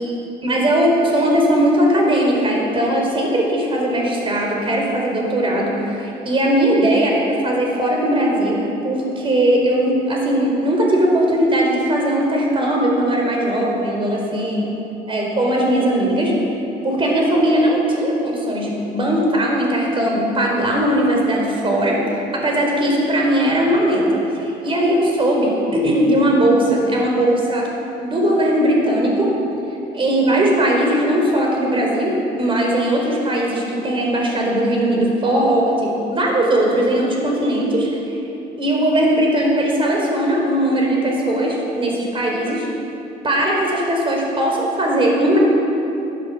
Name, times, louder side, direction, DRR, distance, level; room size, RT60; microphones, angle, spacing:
voice 1, 0.4-14.6 15.1-16.3 16.8-27.7 28.0-29.3 29.9-37.9 38.6-42.7 43.2-45.4, right 1 dB, 30° right, -1 dB, 4.7 m, -19 dB
14.5 x 13.5 x 7.4 m, 2.9 s
cardioid pair, 110°, 17 cm